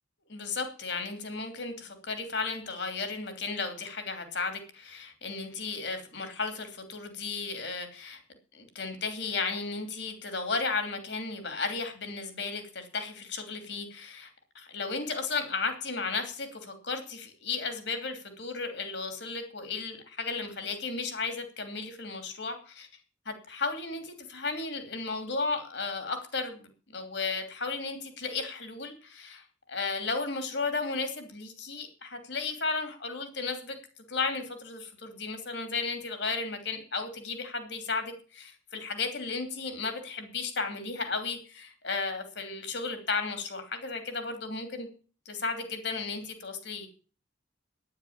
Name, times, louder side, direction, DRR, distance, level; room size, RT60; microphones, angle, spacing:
voice 1, 0.3-8.2 8.5-22.9 23.2-44.9 45.2-46.9, left 4 dB, 60° left, 7 dB, 2.9 m, -34 dB
9.8 x 9.6 x 8.7 m, 0.40 s
head